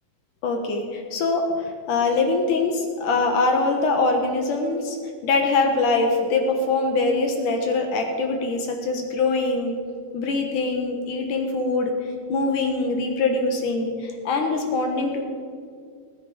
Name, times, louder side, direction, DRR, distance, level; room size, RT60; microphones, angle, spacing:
voice 1, 0.4-1.4 1.9-4.8 5.2-9.7 10.1-11.9 12.3-15.2, left 3 dB, 65° left, 3 dB, 2.5 m, -23 dB
20.0 x 9.4 x 5.0 m, 2.2 s
omnidirectional pair, 4.4 m